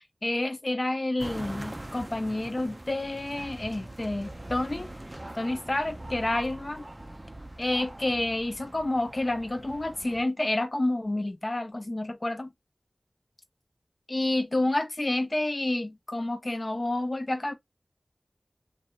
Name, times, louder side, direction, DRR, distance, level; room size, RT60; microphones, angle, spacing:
voice 1, 0.2-4.9 5.4-6.9 7.6-12.5 14.1-17.5, left 2 dB, 45° left, 0.6 m, -29 dB
sound 1, 1.2-10.2, right 1 dB, 30° right, 0.3 m, -42 dB
2.8 x 2.4 x 2.2 m
wide cardioid pair, 40°, 0 cm